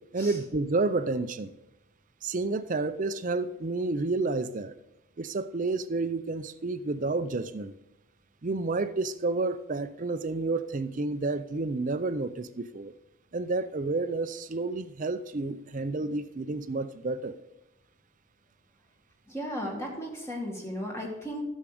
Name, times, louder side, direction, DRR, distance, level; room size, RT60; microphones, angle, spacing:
voice 1, 0.1-1.5 2.2-4.8 5.2-7.7 8.4-12.9 13.3-17.4, right 3 dB, 35° right, 0.5 m, -30 dB
voice 2, 19.3-21.4, equal, 10° left, 1.9 m, -35 dB
11.5 x 7.4 x 5.0 m
head